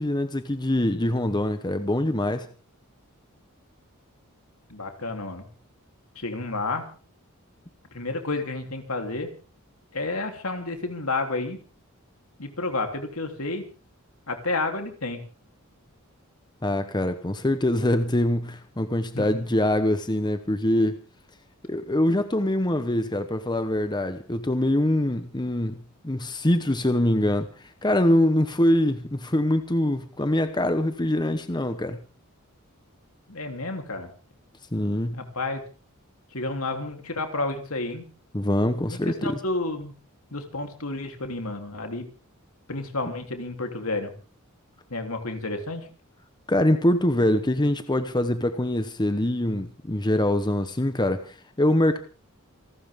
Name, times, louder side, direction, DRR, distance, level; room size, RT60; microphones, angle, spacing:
voice 1, 0.0-2.5 16.6-21.0 21.6-32.0 34.7-35.2 38.3-39.4 46.5-52.0, left 1 dB, 20° left, 9 dB, 1.0 m, -24 dB
voice 2, 4.7-5.5 6.2-6.8 7.9-9.3 9.9-11.6 12.4-13.7 14.3-15.2 19.2-19.4 33.3-34.1 35.1-35.6 36.3-38.0 38.9-39.9 40.3-42.1 42.7-44.1 44.9-45.9, left 2 dB, 70° left, 5 dB, 3.5 m, -30 dB
28.5 x 13.0 x 3.7 m, 0.37 s
head